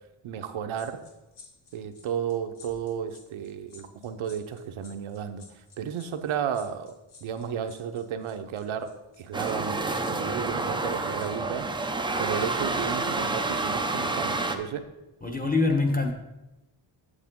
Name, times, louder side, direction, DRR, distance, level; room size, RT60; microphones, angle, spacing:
voice 1, 0.2-1.0 1.7-5.5 5.8-7.0 7.2-11.7 12.2-14.8, right 8 dB, 80° right, 7 dB, 0.8 m, -33 dB
sound 1, 0.7-11.3 11.6-11.8, left 5 dB, 90° left, 2.1 m, -54 dB
sound 2, 9.3-14.6, right 3 dB, 10° right, 0.4 m, -29 dB
voice 2, 15.2-16.1, left 3 dB, 20° left, 3 dB, 0.9 m, -24 dB
8.2 x 8.2 x 3.7 m, 0.96 s
wide cardioid pair, 160°, 48 cm